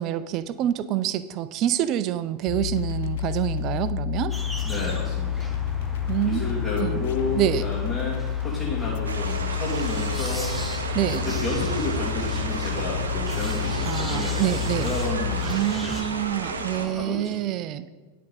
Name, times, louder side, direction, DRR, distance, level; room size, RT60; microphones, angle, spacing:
voice 1, 0.0-4.3 6.1-6.4 6.8-7.1 7.3-7.6 10.9-11.3 13.8-14.9 15.4-17.9, right 12 dB, 35° right, 14 dB, 0.4 m, -26 dB
sound 1, 2.5-15.5, left 11 dB, 55° left, 0.3 m, -30 dB
sound 2, 4.3-16.0, left 1 dB, ahead, 0.9 m, -36 dB
voice 2, 4.6-5.5 6.2-10.5 11.0-14.5 14.8-16.1 16.7-17.4, left 2 dB, 20° left, -6 dB, 2.0 m, -31 dB
sound 3, 9.1-16.9, right 3 dB, 75° right, 0.8 m, -32 dB
10.5 x 5.4 x 4.1 m, 1.3 s
figure-of-eight pair, 90°, 0 cm